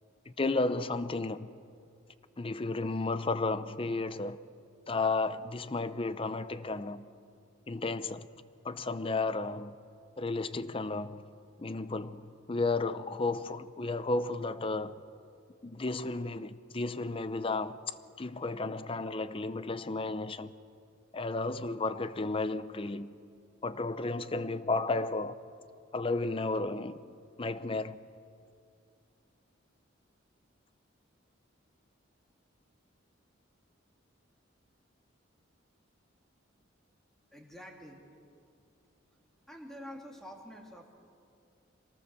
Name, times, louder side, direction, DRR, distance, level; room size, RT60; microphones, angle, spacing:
voice 1, 0.3-1.5 2.4-4.4 4.9-7.1 7.7-8.3 8.6-9.7 10.2-11.2 11.6-15.0 15.6-17.8 18.2-20.5 21.1-23.1 23.6-25.3 25.9-27.0 27.4-28.0, left 3 dB, 30° left, 0.6 m, -33 dB
voice 2, 37.3-38.1 39.5-40.9, equal, ahead, 2.6 m, -47 dB
24.5 x 18.0 x 7.0 m
head